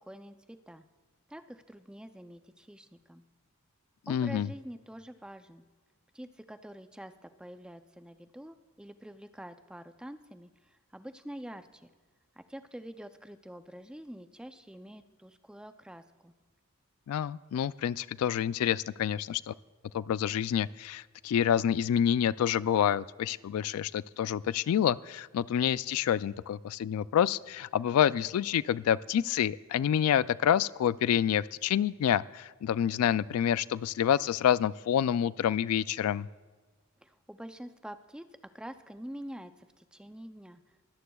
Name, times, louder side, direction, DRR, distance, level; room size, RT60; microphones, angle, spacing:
voice 1, 0.1-0.8 1.3-3.2 4.1-5.6 6.1-11.9 12.4-16.3 37.0-38.3 38.5-40.8, equal, 5° right, 9 dB, 0.4 m, -46 dB
voice 2, 4.1-4.5 17.1-19.5 19.9-36.3, left 9 dB, 85° left, 17 dB, 0.3 m, -28 dB
22.5 x 16.0 x 2.3 m, 1.3 s
head